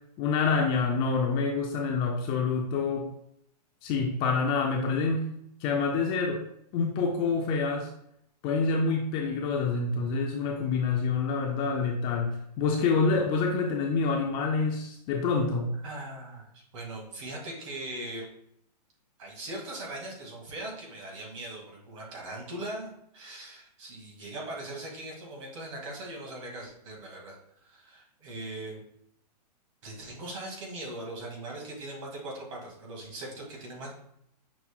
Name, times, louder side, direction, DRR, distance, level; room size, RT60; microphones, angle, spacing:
voice 1, 0.2-3.1 3.8-5.3 5.6-6.4 6.7-7.9 8.4-15.7, left 4 dB, 20° left, 0 dB, 0.3 m, -27 dB
voice 2, 15.8-18.3 19.2-27.4 27.6-28.8 29.8-33.9, right 1 dB, 50° right, -2 dB, 1.8 m, -40 dB
6.0 x 2.2 x 3.5 m, 0.72 s
hypercardioid pair, 140°, 21 cm